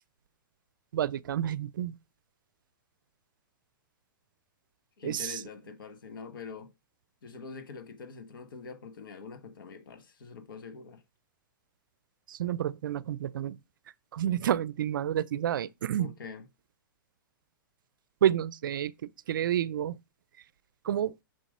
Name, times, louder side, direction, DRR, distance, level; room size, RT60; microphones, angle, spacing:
voice 1, 0.9-2.0 5.0-5.4 12.3-13.6 14.1-16.1 18.2-20.0 20.8-21.2, right 10 dB, 75° right, 0.5 m, -29 dB
voice 2, 5.0-6.7 7.2-11.0 16.0-16.4, left 5 dB, 80° left, 1.4 m, -44 dB
6.6 x 4.0 x 5.3 m
hypercardioid pair, 130°, 11 cm